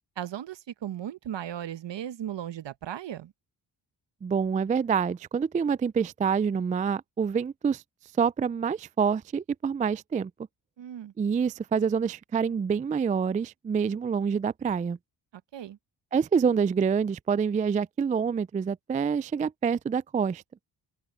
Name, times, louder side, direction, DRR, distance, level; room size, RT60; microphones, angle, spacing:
voice 1, 0.2-3.3 10.8-11.1 15.5-15.8, right 10 dB, 60° right, 1.1 m, -36 dB
voice 2, 4.2-7.8 8.2-10.3 11.2-15.0 16.1-20.4, right 6 dB, 20° right, 0.3 m, -26 dB
supercardioid pair, 45°, 48 cm